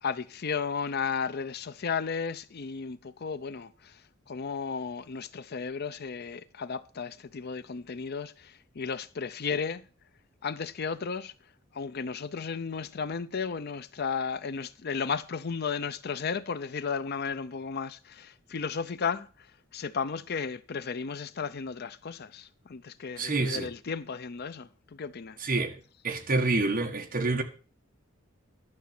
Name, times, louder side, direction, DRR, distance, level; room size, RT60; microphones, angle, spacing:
voice 1, 0.0-4.0 4.3-9.8 10.4-11.3 11.7-19.3 19.7-25.4, left 5 dB, 50° left, 0.6 m, -34 dB
voice 2, 23.2-23.7 25.4-25.8 26.0-27.4, right 3 dB, 45° right, 1.6 m, -27 dB
11.5 x 6.9 x 6.0 m
head